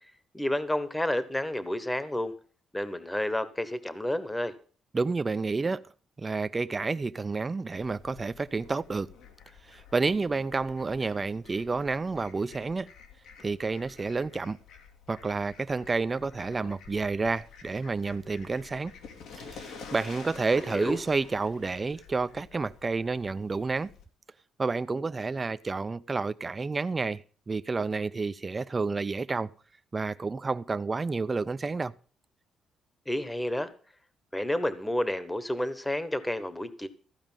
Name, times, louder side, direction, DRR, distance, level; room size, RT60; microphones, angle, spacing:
voice 1, 0.3-2.3 2.7-4.5 20.6-21.0 33.1-33.7 34.3-36.9, left 1 dB, 10° left, 1.2 m, -30 dB
voice 2, 4.9-5.8 6.2-9.1 9.7-12.9 13.4-14.6 15.1-18.9 19.4-23.9 24.6-29.5 29.9-31.9, right 4 dB, 30° right, 0.6 m, -30 dB
Fowl, 7.7-24.0, left 5 dB, 80° left, 2.5 m, -50 dB
14.5 x 5.1 x 9.0 m
cardioid pair, 90°, 0 cm